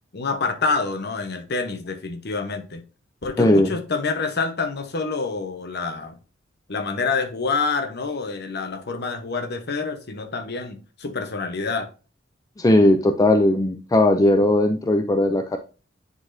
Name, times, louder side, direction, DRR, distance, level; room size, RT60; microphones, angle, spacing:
voice 1, 0.1-2.8 3.2-6.2 6.7-11.9, left 4 dB, 55° left, 1.0 m, -27 dB
voice 2, 3.4-3.7 12.6-15.6, left 1 dB, 20° left, 0.4 m, -18 dB
9.6 x 4.0 x 2.7 m
head